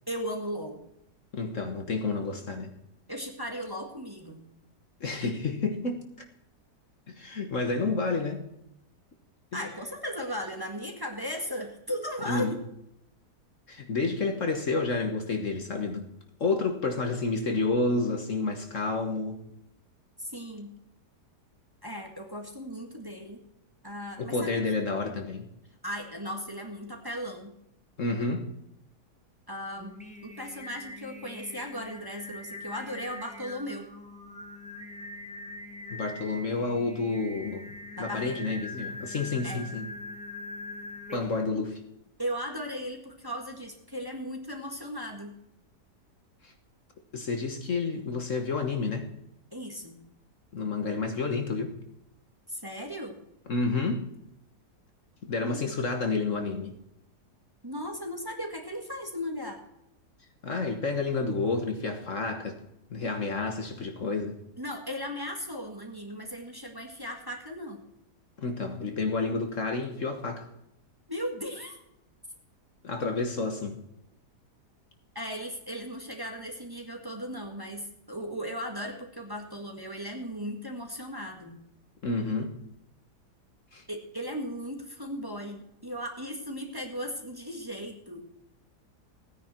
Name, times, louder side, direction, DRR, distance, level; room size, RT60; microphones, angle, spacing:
voice 1, 0.1-0.8 3.1-4.4 9.5-12.6 20.2-20.7 21.8-23.4 23.8-24.6 25.8-27.5 29.5-33.9 38.0-38.4 39.4-39.6 42.2-45.4 49.5-50.0 52.5-53.2 55.4-55.6 57.6-59.6 64.6-67.8 71.1-71.8 75.2-81.6 83.9-88.2, equal, 15° right, 2 dB, 1.8 m, -37 dB
voice 2, 1.3-2.7 5.0-6.1 7.1-8.4 9.5-9.7 12.2-12.5 13.7-16.1 16.4-19.4 24.2-25.4 28.0-28.5 35.9-39.9 41.1-41.8 46.4-46.5 47.1-49.1 50.5-51.7 53.5-54.1 55.2-56.7 60.4-62.6 62.9-64.4 68.4-70.5 72.8-73.8 82.0-82.5 83.7-83.8, left 3 dB, 50° left, 5 dB, 1.6 m, -30 dB
Singing, 29.8-41.5, left 2 dB, 5° left, 1.3 m, -42 dB
16.0 x 9.9 x 4.5 m, 0.81 s
omnidirectional pair, 1.7 m